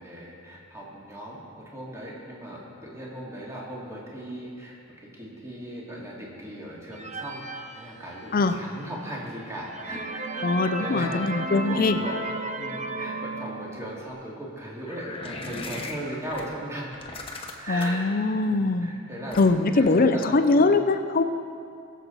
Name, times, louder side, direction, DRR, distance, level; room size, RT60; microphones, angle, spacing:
voice 1, 0.0-4.8 5.2-10.5 10.8-16.9 17.6-18.0 18.5-20.8, right 1 dB, 15° right, -5 dB, 2.2 m, -38 dB
sound 1, 6.9-8.6 9.1-9.2 9.6-14.1, right 2 dB, 35° right, 0.8 m, -34 dB
voice 2, 10.4-12.0 17.7-18.9 19.4-21.2, left 3 dB, 45° left, 9 dB, 0.5 m, -22 dB
sound 2, 14.9-16.4 16.9-18.0 19.3-19.7, left 2 dB, 25° left, 1.1 m, -37 dB
21.0 x 7.3 x 4.1 m, 2.4 s
head